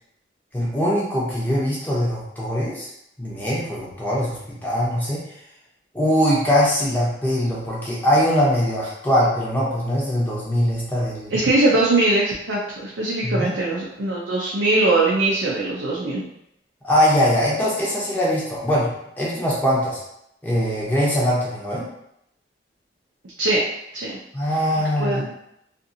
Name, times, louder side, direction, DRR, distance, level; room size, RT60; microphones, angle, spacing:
voice 1, 0.5-2.9 3.2-5.3 5.9-11.3 13.2-13.5 16.8-20.0 20.4-21.9 24.3-25.3, equal, 10° left, -6 dB, 0.7 m, -22 dB
voice 2, 11.3-16.3 23.4-23.6 23.9-24.1 25.0-25.3, right 2 dB, 85° right, -5 dB, 0.5 m, -21 dB
2.6 x 2.5 x 2.7 m, 0.77 s
head